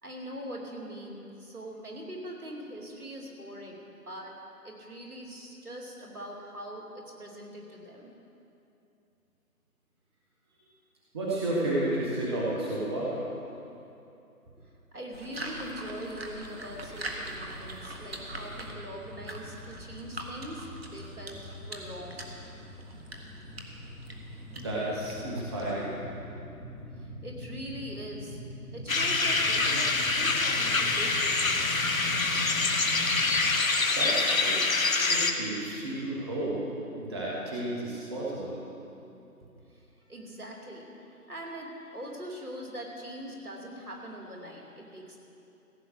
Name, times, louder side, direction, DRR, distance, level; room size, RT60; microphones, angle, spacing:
voice 1, 0.0-4.4 4.6-8.1 14.6-22.3 26.8-28.4 28.7-31.9 39.4-45.2, equal, 70° right, -1 dB, 2.9 m, -42 dB
voice 2, 11.1-13.2 24.5-25.9 33.9-34.6 35.1-36.6 37.0-38.6, right 1 dB, 15° right, -6 dB, 1.3 m, -32 dB
sound 1, 15.1-26.0, right 1 dB, 40° right, 1.4 m, -43 dB
sound 2, 16.5-33.4, equal, ahead, 1.8 m, -43 dB
sound 3, 28.9-35.3, left 3 dB, 60° left, 1.1 m, -26 dB
15.5 x 8.6 x 6.5 m, 2.8 s
figure-of-eight pair, 155°, 46 cm